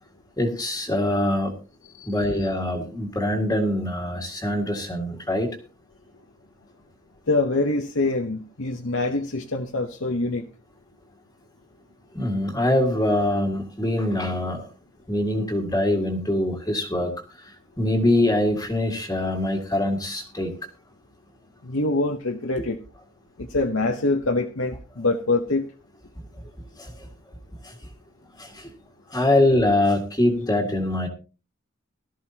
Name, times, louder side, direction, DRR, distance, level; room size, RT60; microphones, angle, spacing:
voice 1, 0.4-1.5 2.1-5.5 12.1-14.7 15.1-17.1 17.8-20.5 22.6-22.7 26.8-26.9 28.4-28.7 29.1-31.1, left 1 dB, 15° left, -1 dB, 1.9 m, -23 dB
voice 2, 7.3-10.4 21.6-22.8 23.4-25.7, left 2 dB, 65° left, 4 dB, 1.0 m, -25 dB
18.0 x 13.0 x 2.9 m, 0.34 s
head